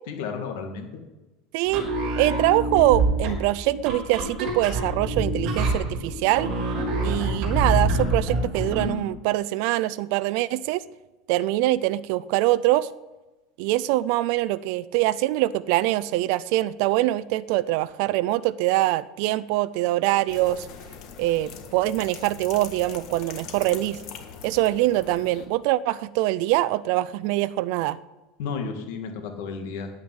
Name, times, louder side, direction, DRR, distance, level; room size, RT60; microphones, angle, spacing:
voice 1, 0.1-0.9 28.4-29.9, left 5 dB, 65° left, 4 dB, 2.3 m, -32 dB
sound 1, 1.6-9.0, right 2 dB, 40° right, 3.5 m, -26 dB
voice 2, 2.2-6.5 7.0-10.8 11.3-12.9 13.6-20.7 21.2-24.0 24.4-28.0, right 16 dB, 55° right, 16 dB, 0.4 m, -23 dB
sound 2, 20.3-25.4, left 7 dB, 45° left, 1.6 m, -42 dB
9.4 x 8.8 x 9.7 m, 1.1 s
supercardioid pair, 170°, 0 cm